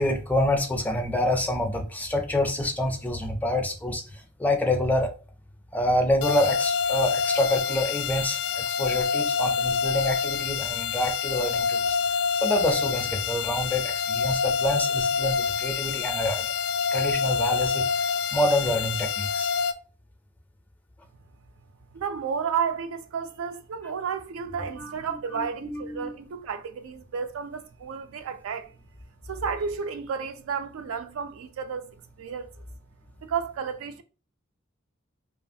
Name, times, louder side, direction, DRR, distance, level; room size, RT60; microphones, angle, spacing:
voice 1, 0.0-5.1 5.7-11.9 12.4-16.4 16.9-17.8 18.3-19.5 24.8-24.9 25.3-26.1, left 1 dB, 10° left, 0.4 m, -27 dB
sound 1, 6.2-19.7, left 6 dB, 80° left, 0.3 m, -27 dB
voice 2, 21.9-28.8 29.3-32.7 33.2-34.0, right 6 dB, 80° right, 0.3 m, -32 dB
2.8 x 2.4 x 2.6 m
head